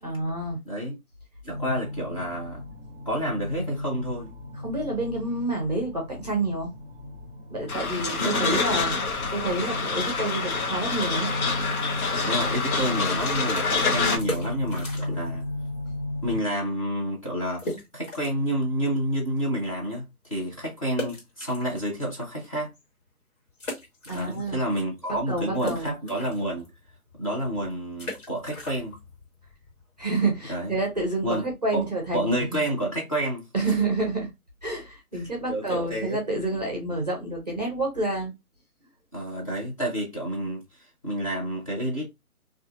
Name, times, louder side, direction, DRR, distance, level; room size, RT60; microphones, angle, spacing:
voice 1, 0.0-0.6 4.6-6.7 7.5-8.9 9.3-11.3 24.1-24.6 25.1-25.9 30.0-32.6 33.5-34.3 34.6-38.3, right 2 dB, 30° right, 0.5 m, -28 dB
voice 2, 1.4-2.6 3.1-4.3 8.2-8.6 12.2-15.4 16.2-17.6 17.9-22.7 24.1-26.7 27.2-29.0 30.5-30.7 31.2-31.5 31.7-31.9 32.1-33.7 35.1-36.2 39.1-42.0, right 1 dB, 25° left, 0.7 m, -29 dB
sound 1, 1.5-16.4, left 1 dB, ahead, 1.0 m, -35 dB
sound 2, 7.7-14.2, left 4 dB, 70° left, 0.8 m, -27 dB
sound 3, 14.2-15.4 15.7-15.8 16.4-16.5 16.8-16.9 17.6-18.5 19.0-19.1 20.9-22.2 22.7-22.8 23.6-24.8 25.0-30.5, left 1 dB, 55° left, 1.6 m, -38 dB
2.5 x 2.4 x 2.5 m
figure-of-eight pair, 155°, 45 cm